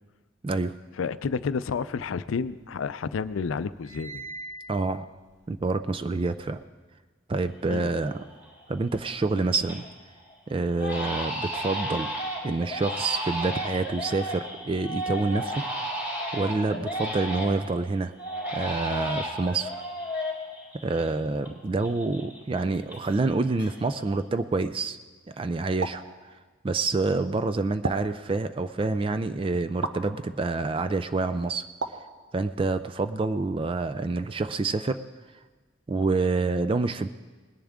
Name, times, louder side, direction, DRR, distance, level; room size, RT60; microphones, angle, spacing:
voice 1, 0.4-0.8 4.7-5.1 5.5-6.6 7.3-8.1 8.7-9.8 10.5-12.1 12.4-15.6 16.3-18.1 18.5-19.7 20.8-25.0 25.3-26.0 26.6-31.6 32.3-35.0 35.9-37.1, right 3 dB, 25° right, 10 dB, 0.3 m, -27 dB
voice 2, 1.0-4.3 7.7-7.9, left 5 dB, 85° left, 15 dB, 0.4 m, -30 dB
sound 1, 1.8-2.9 3.2-6.6, right 2 dB, 15° left, 1.2 m, -44 dB
Crying sobbing, 7.6-7.7 8.2-8.6 9.0-9.9 10.2-10.3 10.8-17.7 18.2-21.5 21.8-23.3 23.6-24.1, equal, 10° right, 3.2 m, -33 dB
sound 2, 25.8-26.1 27.8-28.2 29.8-30.1 31.8-32.1, right 3 dB, 75° right, 0.8 m, -32 dB
20.0 x 10.5 x 3.6 m, 1.3 s
head